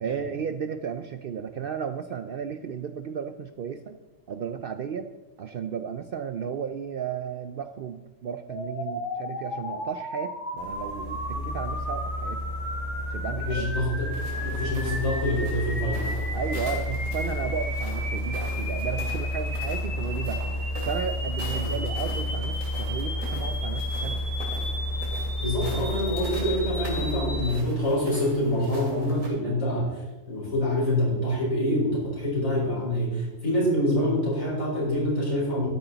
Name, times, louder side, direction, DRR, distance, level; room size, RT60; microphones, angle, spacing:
voice 1, 0.0-4.0 4.3-5.1 5.4-12.4 13.1-13.7 16.3-20.6 20.8-24.2 25.7-25.8, right 7 dB, 65° right, 10 dB, 0.6 m, -34 dB
sound 1, 8.5-27.5, left 1 dB, 55° left, 2.8 m, -36 dB
sound 2, 10.6-27.5, left 1 dB, 30° left, 1.6 m, -31 dB
voice 2, 13.3-14.1 14.4-16.1 21.5-21.7 25.4-35.7, left 1 dB, 80° left, -5 dB, 5.0 m, -26 dB
sound 3, 14.1-29.3, right 1 dB, 80° right, 3.1 m, -42 dB
12.5 x 9.9 x 4.0 m, 1.2 s
omnidirectional pair, 1.4 m